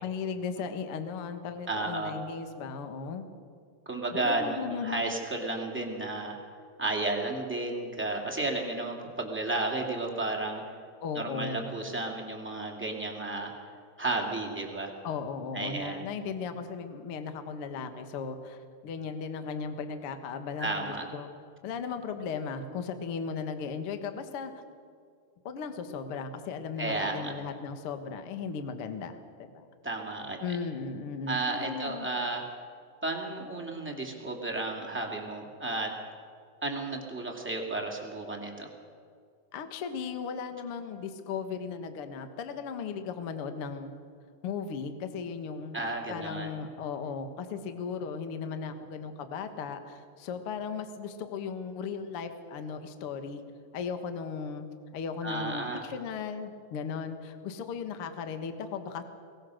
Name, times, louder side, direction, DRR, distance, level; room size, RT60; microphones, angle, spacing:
voice 1, 0.0-3.3 4.2-5.0 11.0-11.7 15.0-21.3 21.6-24.5 25.4-29.7 30.4-32.1 39.5-43.9 44.4-53.4 53.7-54.7 54.9-59.0, left 5 dB, 85° left, 8 dB, 1.2 m, -36 dB
voice 2, 1.7-2.1 3.8-6.3 6.8-10.6 11.1-13.5 14.0-14.9 15.5-16.0 20.6-21.1 26.8-27.3 29.8-30.4 31.3-32.4 33.0-35.9 36.6-38.7 45.7-46.6 55.2-55.8, right 2 dB, 5° right, -1 dB, 1.2 m, -33 dB
23.0 x 19.5 x 6.5 m, 2.2 s
omnidirectional pair, 4.9 m